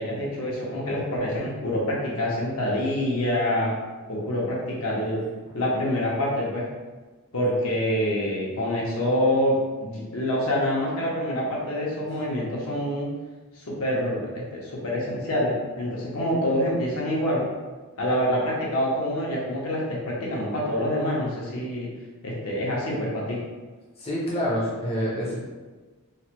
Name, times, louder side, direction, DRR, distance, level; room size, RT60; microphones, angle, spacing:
voice 1, 0.0-3.7 4.1-5.2 5.5-6.7 7.3-13.1 13.5-17.5 18.0-21.9 22.2-23.4, left 1 dB, 70° left, -4 dB, 0.8 m, -26 dB
voice 2, 24.0-25.4, equal, 25° left, -6 dB, 0.6 m, -27 dB
3.1 x 2.1 x 2.9 m, 1.3 s
head